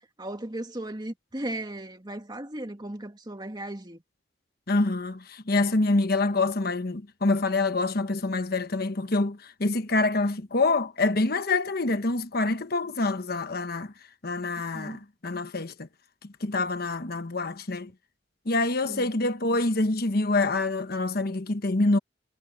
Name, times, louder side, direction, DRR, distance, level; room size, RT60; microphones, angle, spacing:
voice 1, 0.2-4.0 14.7-15.0 18.8-19.1, right 1 dB, 25° right, 2.0 m, -36 dB
voice 2, 4.7-13.9 14.2-15.7 16.4-17.9 18.5-22.0, left 2 dB, 55° left, 1.2 m, -26 dB
head